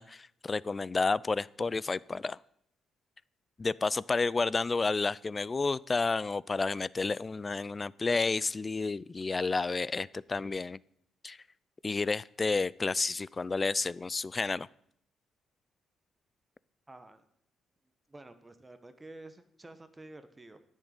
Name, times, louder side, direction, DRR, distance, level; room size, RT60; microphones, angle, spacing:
voice 1, 0.0-2.4 3.6-10.8 11.2-11.4 11.8-14.7, left 3 dB, 30° left, 22 dB, 0.3 m, -31 dB
voice 2, 16.9-17.2 18.1-20.6, right 2 dB, 20° right, 10 dB, 1.1 m, -50 dB
10.0 x 6.4 x 8.9 m, 0.69 s
cardioid pair, 90°, 0 cm